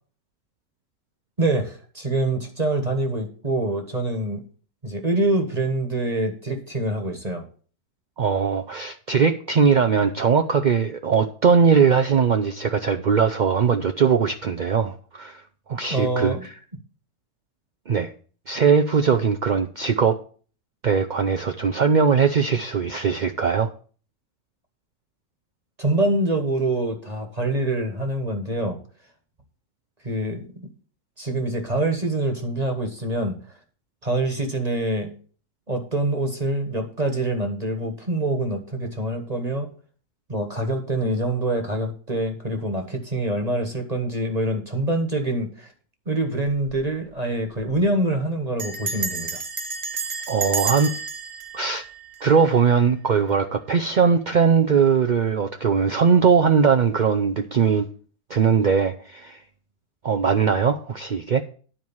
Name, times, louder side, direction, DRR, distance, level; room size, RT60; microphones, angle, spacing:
voice 1, 1.4-4.4 4.8-7.4 15.9-16.5 25.8-28.8 30.0-30.5 31.2-33.3 34.0-35.1 35.7-39.7 40.3-45.7 46.1-49.4, right 2 dB, 25° right, 1.4 m, -25 dB
voice 2, 8.2-15.4 15.7-16.5 17.9-18.1 18.5-20.2 20.8-23.7 50.3-50.9 51.5-51.8 52.2-57.9 58.3-59.4 60.0-61.4, right 6 dB, 70° right, 0.4 m, -20 dB
Bell, 46.5-46.8 47.1-47.2 47.4-47.8 48.6-52.7, right 4 dB, 45° right, 1.4 m, -31 dB
10.0 x 4.7 x 7.1 m
omnidirectional pair, 1.6 m